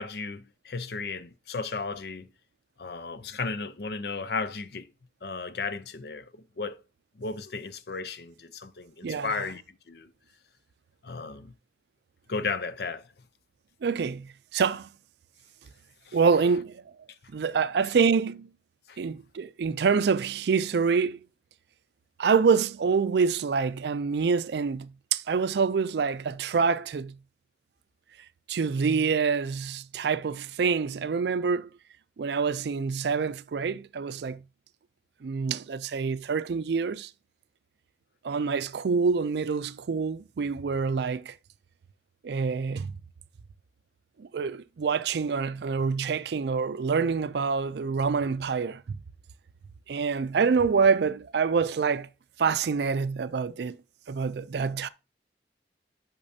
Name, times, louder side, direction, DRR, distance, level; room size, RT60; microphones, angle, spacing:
voice 1, 0.0-2.3 2.8-4.9 5.2-6.3 6.6-6.8 7.2-9.6 9.9-10.1 11.0-11.5 12.3-13.0 16.1-16.2 18.9-19.0, left 4 dB, 60° left, 0.6 m, -34 dB
voice 2, 9.0-9.5 13.8-14.9 16.1-16.8 17.3-18.5 19.0-21.2 22.2-27.2 28.5-31.7 32.2-34.4 35.2-37.1 38.2-41.3 42.2-42.9 44.2-48.8 49.9-52.1 52.4-53.8 54.1-54.9, right 5 dB, 65° right, 0.4 m, -26 dB
8.5 x 5.9 x 2.7 m
head